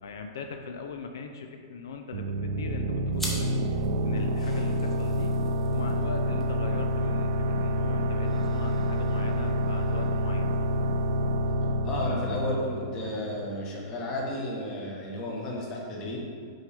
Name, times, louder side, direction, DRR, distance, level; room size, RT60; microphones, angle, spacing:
voice 1, 0.0-3.6 4.0-5.3 5.7-10.7, left 4 dB, 80° left, 5 dB, 0.5 m, -40 dB
sound 1, 2.1-13.5, equal, 65° right, 0.5 m, -28 dB
sound 2, 3.1-12.1, left 1 dB, 5° left, 0.8 m, -45 dB
voice 2, 11.8-16.2, left 1 dB, 25° left, -3 dB, 1.1 m, -33 dB
6.2 x 5.4 x 3.4 m, 2.3 s
supercardioid pair, 170°, 2 cm